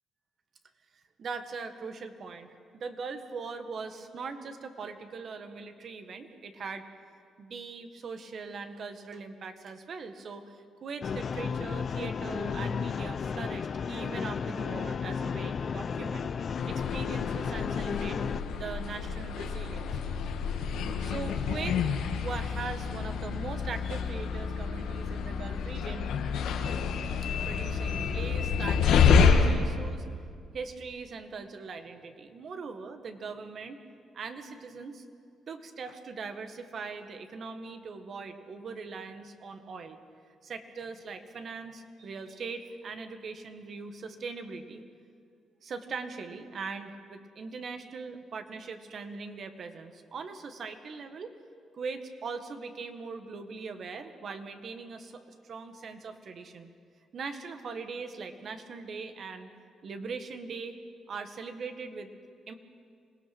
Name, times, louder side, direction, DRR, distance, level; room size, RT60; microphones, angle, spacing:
voice 1, 1.2-2.5 2.7-6.8 7.4-16.3 16.6-18.2 18.5-19.9 21.0-26.1 27.5-30.0 30.5-33.8 34.1-35.0 35.5-40.0 40.4-44.8 45.6-51.3 51.7-56.7 57.1-59.5 59.8-60.8 61.1-62.1 62.5-62.6, right 4 dB, 55° right, 7 dB, 1.7 m, -40 dB
sound 1, 11.0-18.4, left 6 dB, 50° left, 0.7 m, -33 dB
sound 2, 16.5-29.6, left 6 dB, 85° left, 1.7 m, -28 dB
26.0 x 18.5 x 6.1 m, 2.3 s
cardioid pair, 90°, 0 cm